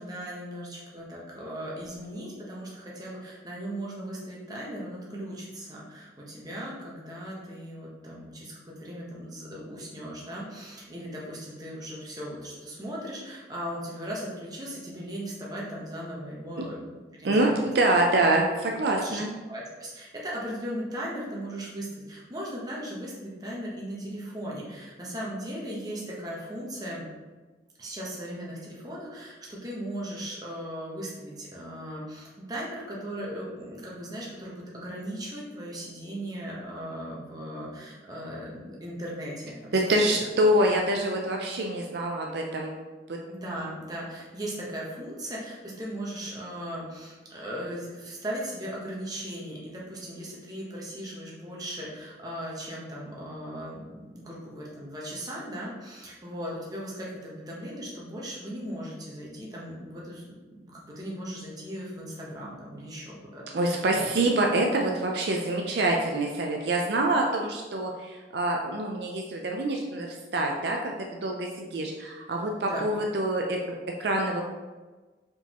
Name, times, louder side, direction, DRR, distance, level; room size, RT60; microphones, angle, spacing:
voice 1, 0.0-16.8 17.2-17.7 19.0-19.2 19.5-27.1 27.8-39.8 40.2-40.3 43.3-60.3 60.7-64.1 72.6-72.9, equal, 20° right, -5 dB, 0.9 m, -38 dB
voice 2, 17.2-19.3 39.7-42.7 43.1-43.2 63.5-74.4, right 1 dB, 65° right, 1 dB, 0.4 m, -26 dB
4.6 x 3.8 x 2.9 m, 1.3 s
head